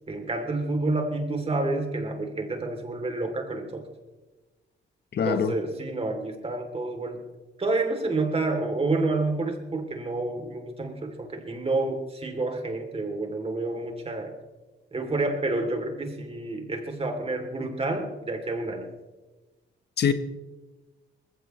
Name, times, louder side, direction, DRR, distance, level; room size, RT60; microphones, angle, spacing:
voice 1, 0.1-3.9 5.2-7.2 7.6-14.3 14.9-18.9, right 2 dB, 30° right, 4 dB, 3.0 m, -29 dB
voice 2, 5.1-5.6 20.0-20.1, left 7 dB, 55° left, 10 dB, 1.1 m, -23 dB
20.0 x 16.0 x 3.2 m, 1.2 s
cardioid pair, 90°, 20 cm